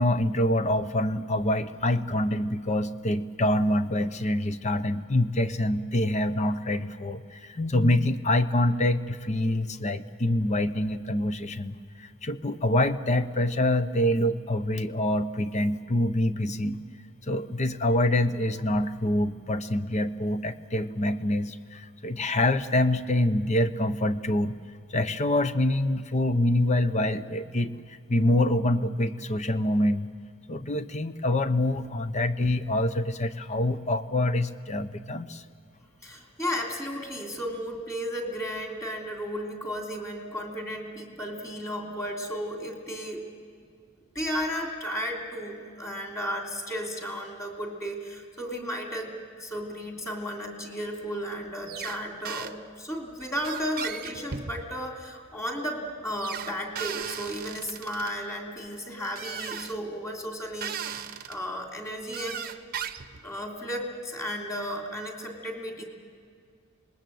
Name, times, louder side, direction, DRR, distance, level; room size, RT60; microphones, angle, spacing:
voice 1, 0.0-16.8 17.3-24.5 24.9-27.8 28.1-30.1 30.5-35.4, left 1 dB, 30° left, 12 dB, 0.7 m, -26 dB
voice 2, 36.0-43.2 44.1-62.5 63.2-65.8, equal, 15° left, 1 dB, 3.0 m, -34 dB
sound 1, 51.7-52.0 52.3-52.5 53.4-54.8 56.2-58.1 59.2-59.8 60.6-61.4 62.1-63.2, right 8 dB, 40° right, 0.9 m, -36 dB
26.0 x 20.5 x 7.8 m, 2.2 s
head